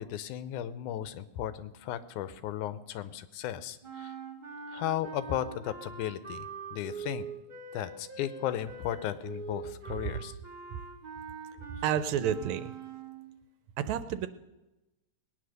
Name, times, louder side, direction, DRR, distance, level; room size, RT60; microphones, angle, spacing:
voice 1, 0.0-4.1 4.7-7.3 7.7-10.4, left 11 dB, 90° left, 14 dB, 2.2 m, -35 dB
sound 1, 3.8-13.4, right 4 dB, 20° right, 1.5 m, -43 dB
voice 2, 11.8-12.7 13.8-14.3, right 9 dB, 75° right, 13 dB, 1.9 m, -30 dB
19.5 x 9.6 x 6.6 m, 0.99 s
omnidirectional pair, 3.5 m